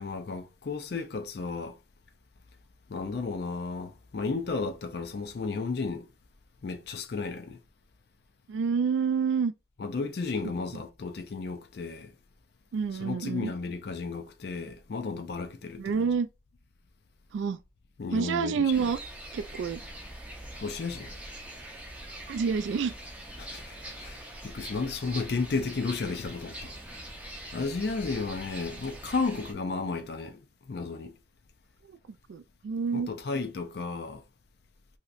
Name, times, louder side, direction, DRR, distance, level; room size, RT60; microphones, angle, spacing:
voice 1, 0.0-1.8 2.9-6.1 6.6-7.6 9.8-12.1 12.9-16.1 18.0-18.9 20.6-21.1 23.4-26.7 27.5-30.4 30.7-31.1 32.9-34.2, left 4 dB, 55° left, 0.4 m, -33 dB
voice 2, 8.5-9.5 12.7-13.5 15.8-16.3 17.3-17.6 18.1-19.0 19.3-19.8 22.3-22.9 31.9-32.0 32.3-33.1, right 6 dB, 80° right, 0.3 m, -28 dB
sound 1, 18.7-29.5, right 1 dB, 5° right, 0.5 m, -43 dB
3.0 x 2.8 x 2.4 m
head